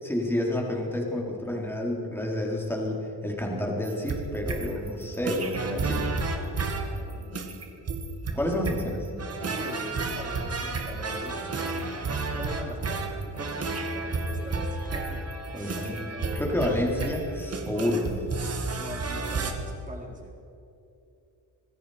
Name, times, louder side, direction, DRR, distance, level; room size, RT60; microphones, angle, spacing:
voice 1, 0.0-6.1 8.3-9.1 15.5-18.2, left 1 dB, 5° left, -1 dB, 3.8 m, -29 dB
sound 1, 3.8-19.5, right 3 dB, 40° right, 2.2 m, -32 dB
voice 2, 6.9-7.7 8.3-8.6 9.4-11.9 12.3-15.2 15.5-15.9 17.6-17.9 18.8-20.3, right 1 dB, 20° right, -1 dB, 4.3 m, -42 dB
26.5 x 20.5 x 5.1 m, 2.8 s
wide cardioid pair, 165°, 40 cm